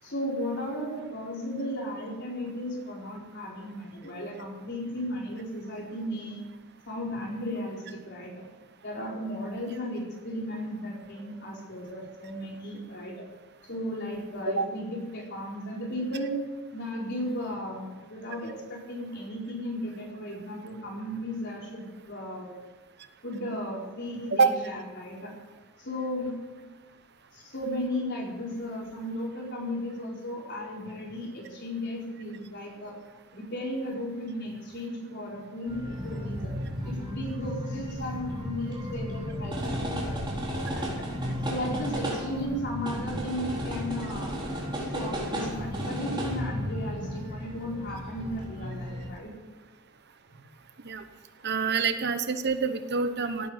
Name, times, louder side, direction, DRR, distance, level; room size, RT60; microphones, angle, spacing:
voice 1, 0.0-6.4 6.9-8.5 8.8-13.3 13.6-16.4 16.7-22.5 23.2-25.3 25.8-26.4 27.3-33.0 33.3-36.5 36.8-41.1 41.4-44.3 44.8-49.3, equal, 50° left, -1 dB, 4.5 m, -35 dB
sound 1, 35.7-49.1, equal, 20° right, 4.0 m, -34 dB
voice 2, 51.4-53.5, right 4 dB, 50° right, 9 dB, 1.0 m, -26 dB
17.5 x 9.7 x 8.0 m, 1.2 s
head